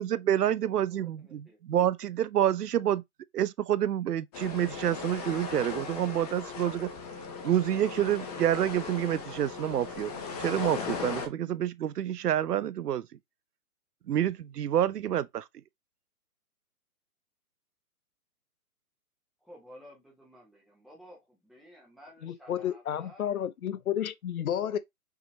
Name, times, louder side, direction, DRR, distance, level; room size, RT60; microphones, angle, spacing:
voice 1, 0.0-3.0 3.3-6.9 7.4-10.1 10.4-13.1 14.1-15.4, right 11 dB, 85° right, 0.7 m, -28 dB
voice 2, 0.7-1.6 19.4-23.3, equal, ahead, 0.9 m, -54 dB
sound 1, 4.3-11.3, left 5 dB, 25° left, 1.1 m, -38 dB
voice 3, 22.2-24.8, left 10 dB, 65° left, 0.8 m, -31 dB
5.7 x 2.9 x 3.2 m
hypercardioid pair, 150°, 46 cm